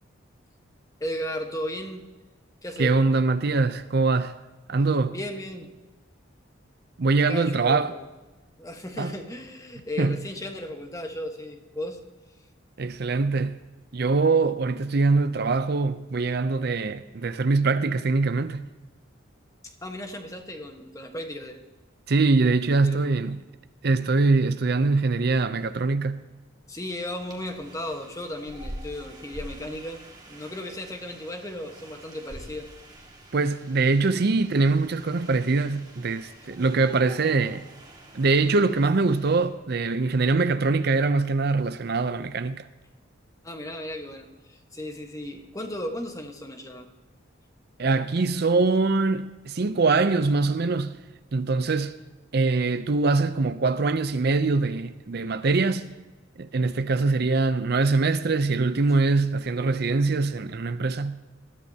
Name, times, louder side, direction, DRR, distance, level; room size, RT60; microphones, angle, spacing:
voice 1, 1.0-2.0 2.6-2.9 5.1-5.7 7.2-8.0 8.6-12.0 19.6-21.6 22.8-23.1 26.7-30.0 30.3-32.7 43.4-46.9, left 1 dB, 15° left, 1.3 m, -35 dB
voice 2, 2.8-4.4 4.7-5.1 7.0-7.9 9.0-9.1 10.0-10.2 12.8-13.6 13.9-18.6 22.1-23.4 23.8-26.2 33.3-37.6 38.1-42.7 47.8-51.0 51.3-51.9 52.3-55.9 56.4-61.2, right 3 dB, 50° right, 0.5 m, -23 dB
sound 1, 27.1-39.5, right 1 dB, 20° right, 2.0 m, -46 dB
20.5 x 14.0 x 2.8 m
head